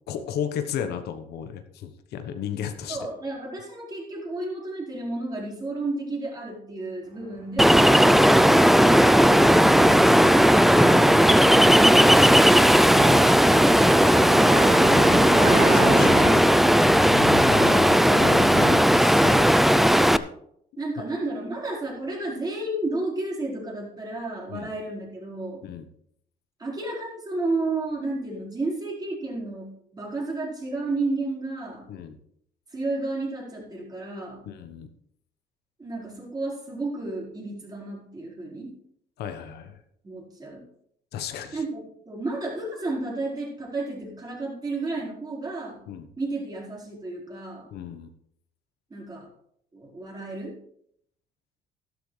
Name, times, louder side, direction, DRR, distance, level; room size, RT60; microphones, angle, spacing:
voice 1, 0.1-3.0 9.6-10.2 15.1-19.5 24.5-24.7 25.6-25.8 31.9-32.2 34.5-34.9 39.2-39.8 41.1-41.6 45.9-46.1 47.7-48.1, left 8 dB, 75° left, 8 dB, 1.1 m, -34 dB
voice 2, 2.9-9.6 20.8-25.7 26.6-31.9 32.7-34.4 35.8-38.7 40.0-40.6 41.5-45.8 46.2-47.7 48.9-49.3 49.7-50.6, right 2 dB, 25° right, -3 dB, 4.6 m, -32 dB
Ocean, 7.6-20.2, equal, ahead, 0.4 m, -16 dB
sound 1, 8.9-16.3, right 2 dB, 40° right, 4.4 m, -30 dB
13.0 x 12.0 x 3.3 m, 0.70 s
cardioid pair, 110°, 17 cm